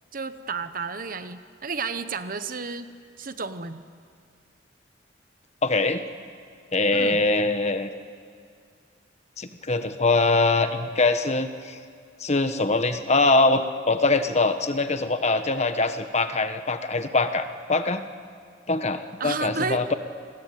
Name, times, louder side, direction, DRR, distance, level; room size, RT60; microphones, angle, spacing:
voice 1, 0.1-2.9 3.2-3.8 6.9-7.2 19.2-19.9, right 4 dB, 50° right, 11 dB, 1.1 m, -32 dB
voice 2, 5.6-6.0 6.7-7.9 9.4-11.8 12.2-18.0 18.7-19.9, left 3 dB, 35° left, 9 dB, 1.3 m, -23 dB
29.0 x 20.5 x 9.3 m, 2.2 s
head